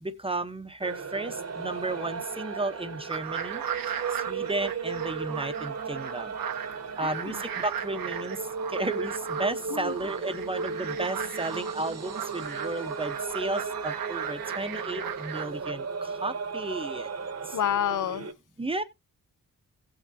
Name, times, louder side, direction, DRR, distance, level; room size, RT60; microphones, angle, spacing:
voice 1, 0.0-3.6 4.3-6.4 7.0-8.4 8.7-17.6 18.6-18.8, right 2 dB, 15° right, 0.8 m, -33 dB
sound 1, 0.8-18.3, right 4 dB, 45° right, 1.1 m, -36 dB
sound 2, 3.1-15.7, right 9 dB, 80° right, 0.8 m, -37 dB
voice 2, 7.0-7.4 9.7-10.0 17.5-18.3, left 10 dB, 60° left, 0.5 m, -29 dB
17.0 x 6.2 x 2.7 m
wide cardioid pair, 130°, 34 cm